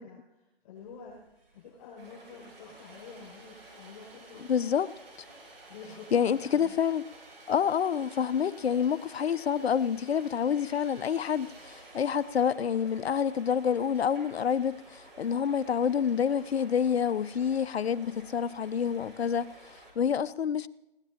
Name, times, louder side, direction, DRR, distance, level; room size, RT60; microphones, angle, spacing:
voice 1, 0.0-4.4 5.7-6.7, left 5 dB, 40° left, 6.5 m, -48 dB
Sawing, 0.8-20.1, right 2 dB, 75° right, 7.1 m, -57 dB
sound 1, 2.0-20.1, right 2 dB, 45° right, 6.0 m, -53 dB
voice 2, 4.4-4.9 6.1-7.0 7.5-20.7, left 7 dB, 85° left, 0.7 m, -28 dB
22.0 x 17.0 x 2.9 m
hypercardioid pair, 155°, 30 cm